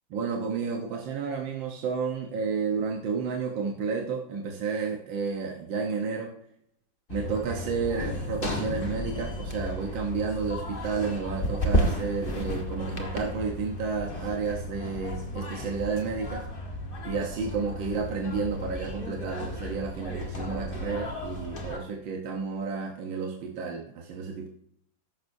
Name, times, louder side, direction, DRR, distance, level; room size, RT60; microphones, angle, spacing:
voice 1, 0.1-6.3 7.1-16.4 17.0-24.5, right 5 dB, 75° right, 1 dB, 1.8 m, -31 dB
sound 1, 7.1-21.8, left 1 dB, 30° left, 1.5 m, -33 dB
14.0 x 11.0 x 2.7 m, 0.72 s
omnidirectional pair, 2.2 m